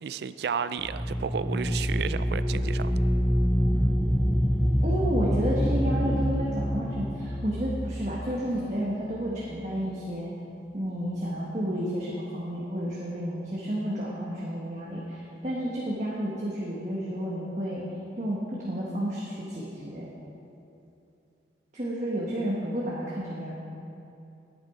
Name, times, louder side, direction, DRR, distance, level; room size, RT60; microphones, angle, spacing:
voice 1, 0.0-3.0, right 6 dB, 70° right, 14 dB, 0.3 m, -32 dB
sound 1, 0.8-9.5, equal, 5° left, 0.5 m, -26 dB
voice 2, 4.8-10.3 10.7-17.8 18.2-20.1 21.7-23.5, equal, 40° right, -5 dB, 1.3 m, -31 dB
11.0 x 9.3 x 4.9 m, 2.7 s
head